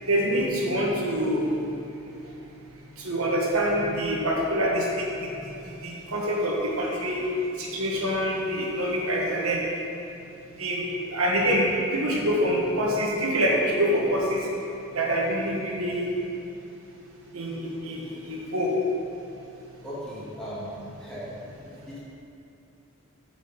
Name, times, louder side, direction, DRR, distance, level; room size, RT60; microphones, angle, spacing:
voice 1, 0.1-1.6 3.0-5.3 5.8-7.2 7.6-9.6 10.6-14.5 14.9-16.1 17.3-18.7, equal, 85° right, -3 dB, 1.4 m, -26 dB
voice 2, 19.8-21.3 21.8-22.0, equal, 5° left, -10 dB, 1.9 m, -37 dB
8.8 x 5.0 x 5.2 m, 2.8 s
head